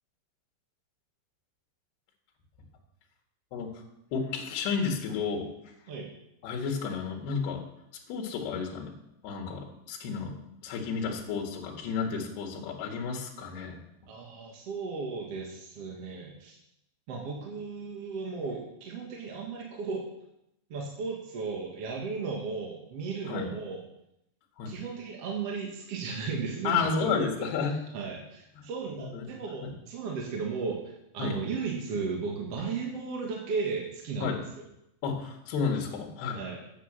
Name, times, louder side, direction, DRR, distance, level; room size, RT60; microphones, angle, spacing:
voice 1, 3.5-3.8 4.1-5.5 6.4-7.6 8.1-8.9 9.2-10.3 10.6-13.8 23.3-23.5 24.6-24.8 26.6-27.8 28.6-28.7 29.0-29.3 29.6-29.7 31.2-31.4 34.2-34.4 35.0-36.4, left 5 dB, 70° left, 0 dB, 3.7 m, -32 dB
voice 2, 14.1-16.6 17.1-20.0 20.7-23.8 24.7-27.5 27.9-34.4 36.3-36.6, right 4 dB, 50° right, -1 dB, 2.0 m, -35 dB
9.9 x 8.5 x 7.5 m, 0.82 s
omnidirectional pair, 5.0 m